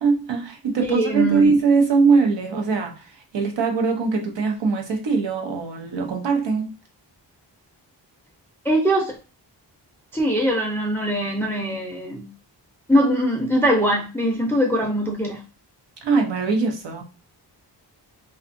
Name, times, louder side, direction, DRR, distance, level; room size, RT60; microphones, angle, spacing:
voice 1, 0.0-6.7 16.0-17.0, right 4 dB, 85° right, 0.8 m, -21 dB
voice 2, 0.9-1.6 8.6-9.2 10.1-12.3 12.9-15.4, equal, 5° left, 0.4 m, -22 dB
2.6 x 2.3 x 2.5 m
wide cardioid pair, 165°, 42 cm